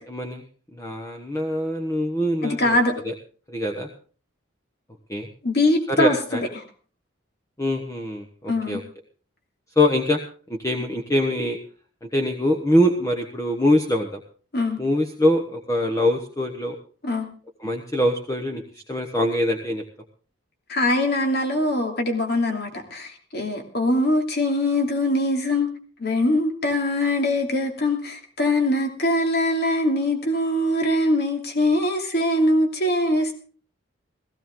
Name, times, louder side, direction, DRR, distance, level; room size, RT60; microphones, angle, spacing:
voice 1, 0.1-0.4 0.7-2.8 3.0-3.1 3.5-3.9 5.1-5.3 5.9-6.4 7.6-8.8 9.8-10.2 10.6-11.6 12.0-14.2 14.8-16.8 17.6-19.8, left 1 dB, 15° left, 2 dB, 1.1 m, -23 dB
voice 2, 2.4-2.9 5.4-6.1 8.5-8.8 14.5-14.8 17.0-17.3 20.7-25.7 26.0-33.3, left 1 dB, 50° left, 4 dB, 2.8 m, -22 dB
16.5 x 15.5 x 3.8 m, 0.41 s
head